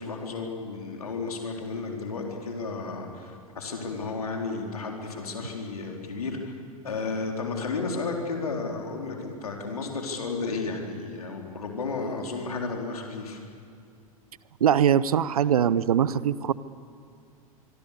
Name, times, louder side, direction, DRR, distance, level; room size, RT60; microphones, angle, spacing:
voice 1, 0.0-6.5 6.8-13.4, left 4 dB, 80° left, 1 dB, 4.0 m, -33 dB
voice 2, 14.6-16.5, right 9 dB, 75° right, 18 dB, 0.8 m, -22 dB
24.5 x 24.5 x 6.9 m, 2.4 s
figure-of-eight pair, 90°, 19 cm